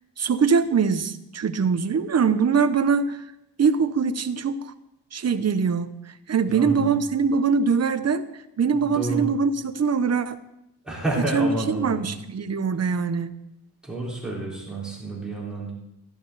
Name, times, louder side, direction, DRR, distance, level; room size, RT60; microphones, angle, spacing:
voice 1, 0.2-3.2 3.6-4.7 5.1-8.3 8.6-10.4 11.3-11.5 11.8-13.3, right 5 dB, 40° right, 11 dB, 0.8 m, -23 dB
voice 2, 6.5-6.9 8.7-9.3 10.8-12.1 13.8-15.7, right 2 dB, ahead, -6 dB, 4.4 m, -29 dB
16.0 x 12.0 x 4.0 m, 0.84 s
wide cardioid pair, 145°, 41 cm